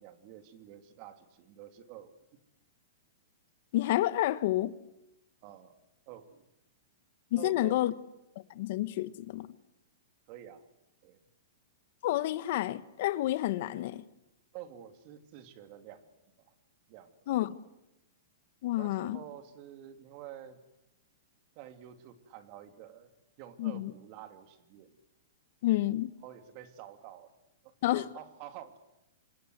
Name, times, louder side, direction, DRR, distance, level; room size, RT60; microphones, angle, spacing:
voice 1, 0.0-2.1 5.4-5.8 6.1-6.5 7.4-7.8 10.3-10.7 11.0-11.2 14.5-16.1 16.4-16.5 16.9-17.2 17.5-17.6 18.7-20.6 21.5-25.0 26.2-27.3 27.6-28.8, right 11 dB, 40° right, 2.9 m, -49 dB
voice 2, 3.7-4.7 7.3-7.9 8.5-9.5 12.0-14.0 17.3-17.5 18.6-19.2 23.6-23.9 25.6-26.1 27.8-28.0, left 15 dB, 50° left, 1.3 m, -29 dB
28.0 x 26.0 x 8.2 m
hypercardioid pair, 155°, 0 cm